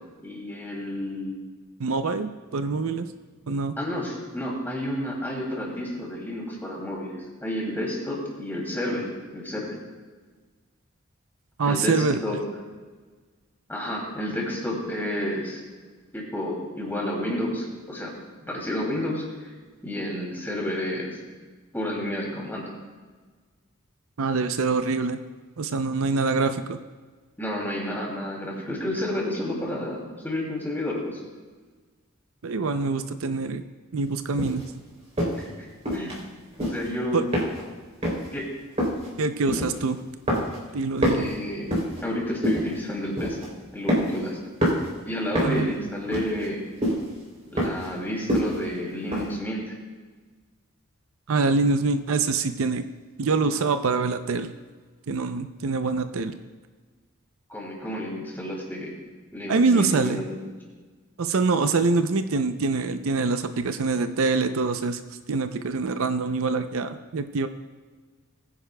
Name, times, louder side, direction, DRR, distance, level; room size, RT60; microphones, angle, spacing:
voice 1, 0.2-1.4 3.8-7.1 7.4-9.7 11.6-12.4 13.7-15.6 16.1-18.1 18.4-19.5 19.8-21.2 21.7-22.7 27.4-31.2 35.3-35.7 35.9-36.1 36.6-37.3 38.3-38.5 41.0-41.8 42.0-43.4 43.7-44.4 45.0-46.6 47.5-49.8 57.5-58.9 59.3-60.2, left 1 dB, 10° left, -2 dB, 2.6 m, -30 dB
voice 2, 1.8-3.1 3.5-3.7 11.6-12.2 24.2-25.2 25.6-26.8 32.4-33.6 33.9-34.6 37.1-37.3 39.2-40.0 40.7-41.3 45.4-45.7 51.3-52.8 53.2-54.5 55.1-56.3 59.5-60.2 61.2-65.0 65.3-67.5, right 4 dB, 70° right, 9 dB, 0.5 m, -25 dB
sound 1, 34.4-34.6 35.2-35.4 35.9-36.2 36.5-36.9 37.3-37.8 38.0-38.3 38.8-39.1 39.5-39.9 40.3-40.7 41.0-42.0 42.4-42.8 43.2-43.5 43.9-44.3 44.6-44.9 45.3-45.7 46.1-46.5 46.8-47.1 47.6-47.9 48.3-48.6 49.1-49.3, equal, 30° right, 3.2 m, -25 dB
20.5 x 9.9 x 2.2 m, 1.4 s
head